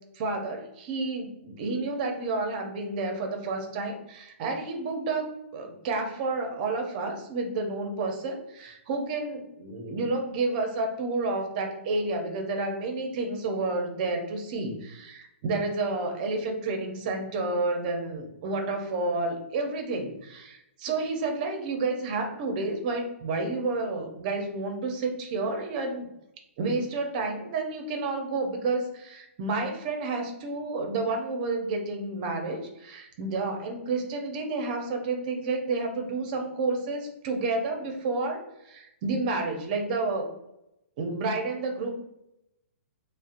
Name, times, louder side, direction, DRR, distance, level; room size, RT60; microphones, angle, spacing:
voice 1, 0.1-26.1 26.6-38.4 38.6-40.3 41.0-41.9, right 3 dB, 40° right, 4 dB, 0.6 m, -30 dB
2.7 x 2.0 x 2.5 m, 0.84 s
hypercardioid pair, 150°, 7 cm